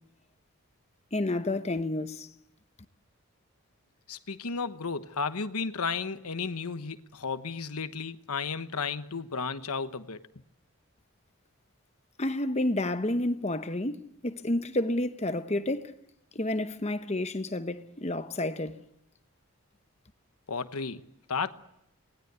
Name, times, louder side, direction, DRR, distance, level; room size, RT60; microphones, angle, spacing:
voice 1, 1.1-2.3 12.2-16.0 16.3-18.8, left 1 dB, 30° left, 0.9 m, -30 dB
voice 2, 4.1-10.3 20.5-21.5, left 5 dB, 90° left, 1.1 m, -33 dB
27.5 x 19.5 x 8.1 m
head